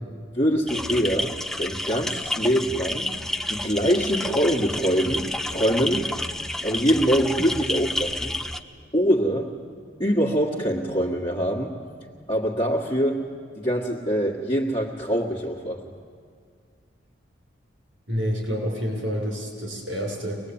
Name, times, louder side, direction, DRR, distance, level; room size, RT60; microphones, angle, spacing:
voice 1, 0.3-3.2 3.5-6.1 6.6-8.3 8.9-9.5 10.0-11.7 12.3-13.3 13.6-15.8, equal, 25° left, -4 dB, 1.8 m, -24 dB
sound 1, 0.7-8.6, left 1 dB, ahead, 0.6 m, -30 dB
voice 2, 18.1-20.4, equal, 80° right, 1 dB, 6.5 m, -28 dB
24.0 x 20.0 x 8.9 m, 2.1 s
head